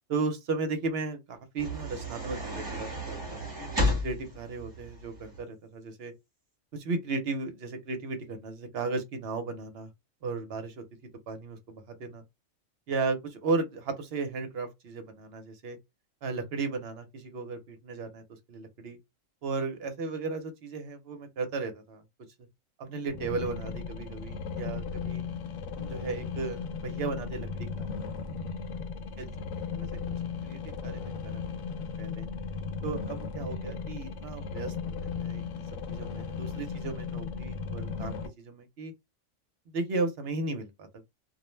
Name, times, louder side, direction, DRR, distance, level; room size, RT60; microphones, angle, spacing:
voice 1, 0.1-3.4 3.8-6.1 6.7-9.9 10.2-10.8 11.3-12.2 12.9-15.8 16.2-19.0 19.4-22.0 22.8-25.2 25.8-27.9 29.2-29.3 29.6-29.9 30.4-31.4 31.8-32.3 32.8-38.9 39.7-41.1, right 3 dB, 55° right, 0.8 m, -35 dB
sound 1, 1.6-5.4, left 1 dB, 20° right, 1.1 m, -33 dB
sound 2, 23.1-38.3, left 5 dB, 90° left, 1.0 m, -36 dB
2.4 x 2.0 x 3.1 m
omnidirectional pair, 1.4 m